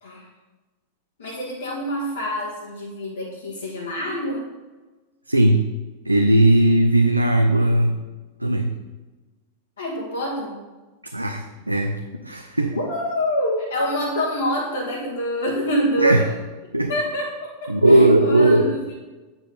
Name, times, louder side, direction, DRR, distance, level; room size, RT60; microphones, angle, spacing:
voice 1, 1.2-4.4 9.8-10.6 12.7-16.3 16.9-18.9, equal, 70° left, -5 dB, 1.5 m, -26 dB
voice 2, 5.3-5.6 6.0-8.0 8.4-8.7 11.1-12.8 16.0-16.2 16.7-16.9 17.7-18.8, right 1 dB, 85° right, 4 dB, 0.5 m, -17 dB
8.4 x 5.2 x 5.6 m, 1.2 s
figure-of-eight pair, 90°, 0 cm